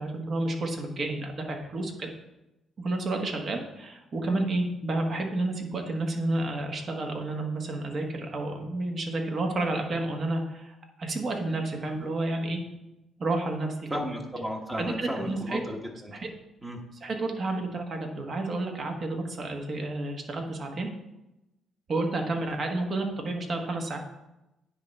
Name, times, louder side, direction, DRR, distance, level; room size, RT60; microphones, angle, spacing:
voice 1, 0.0-2.1 2.8-12.6 13.2-13.7 14.8-15.6 16.1-16.3 17.0-20.9 21.9-24.0, right 2 dB, 45° right, 2 dB, 1.4 m, -30 dB
voice 2, 13.9-16.1 16.6-16.8, equal, 15° right, 0 dB, 1.2 m, -34 dB
9.6 x 3.3 x 5.5 m, 0.94 s
cardioid pair, 95°, 0 cm